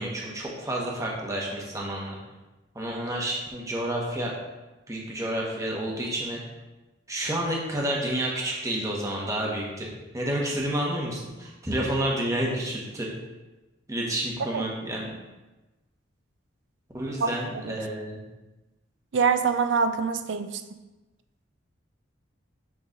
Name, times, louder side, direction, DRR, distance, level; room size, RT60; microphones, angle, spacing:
voice 1, 0.0-2.2 2.7-4.3 4.9-6.4 7.1-9.9 10.1-13.1 13.9-15.2 16.9-18.2, right 1 dB, 15° right, -3 dB, 1.0 m, -30 dB
voice 2, 19.1-20.6, right 5 dB, 65° right, 9 dB, 0.5 m, -24 dB
6.1 x 3.1 x 5.2 m, 1.1 s
head